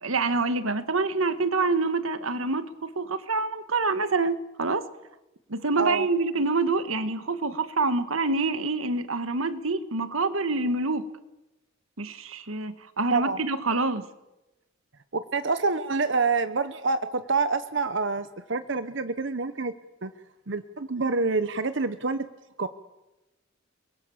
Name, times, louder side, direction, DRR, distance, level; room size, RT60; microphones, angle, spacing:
voice 1, 0.0-4.9 5.5-11.1 12.0-14.1, right 3 dB, 85° right, 1.7 m, -26 dB
voice 2, 15.1-19.7 20.0-20.1 20.5-22.3 22.6-22.7, right 4 dB, 60° right, 1.0 m, -27 dB
30.0 x 22.5 x 7.3 m
head